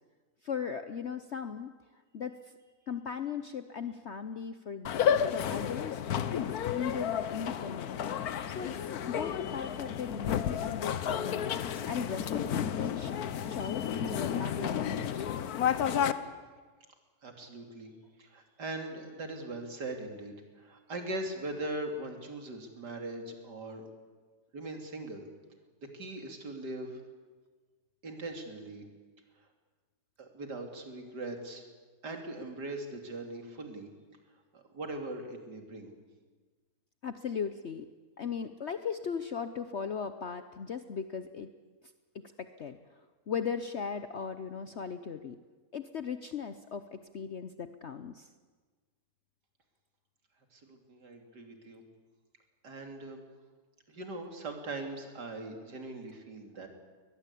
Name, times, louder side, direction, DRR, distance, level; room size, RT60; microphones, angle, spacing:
voice 1, 0.4-1.7 2.1-2.3 2.9-4.9 5.3-6.0 6.3-8.0 8.5-12.3 12.5-13.1 13.5-15.2 37.0-37.9 38.2-41.5 42.4-42.8 43.3-45.4 45.7-48.3, left 6 dB, 50° left, 10 dB, 0.9 m, -37 dB
sound 1, 4.9-16.1, left 8 dB, 70° left, 1.4 m, -32 dB
voice 2, 17.2-17.9 18.2-23.8 24.5-25.3 25.8-27.0 28.0-28.8 30.2-31.6 32.0-33.9 34.5-35.9 50.5-51.8 52.6-53.2 53.9-56.7, right 2 dB, 90° right, 4 dB, 3.5 m, -40 dB
22.0 x 20.5 x 8.4 m, 1.4 s
omnidirectional pair, 1.7 m